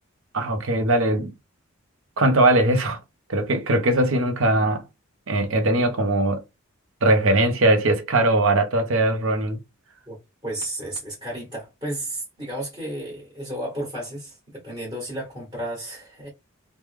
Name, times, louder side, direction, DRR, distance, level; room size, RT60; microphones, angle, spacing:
voice 1, 0.3-1.3 2.2-3.0 3.3-4.8 5.3-6.4 7.0-9.6, right 2 dB, 65° right, 0.6 m, -20 dB
voice 2, 10.4-16.3, right 1 dB, 20° right, 1.3 m, -33 dB
3.3 x 2.1 x 3.2 m
head